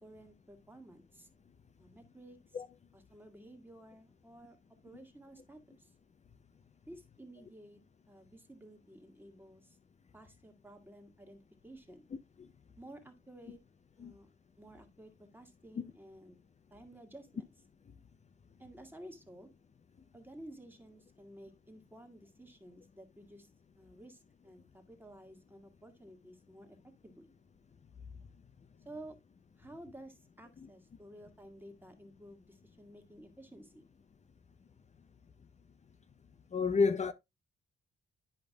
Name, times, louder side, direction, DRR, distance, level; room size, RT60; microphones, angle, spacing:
voice 1, 0.0-1.3 1.8-2.6 2.9-4.6 4.8-5.9 6.8-7.8 8.1-9.8 10.1-12.0 12.8-13.6 14.0-14.3 14.6-16.4 16.7-17.5 18.6-19.5 20.1-23.5 23.7-26.8 27.0-27.3 28.8-29.2 29.5-33.9, right 1 dB, 10° right, 1.6 m, -53 dB
voice 2, 36.5-37.1, left 4 dB, 35° left, 0.5 m, -29 dB
10.5 x 5.2 x 2.2 m
cardioid pair, 120°, 21 cm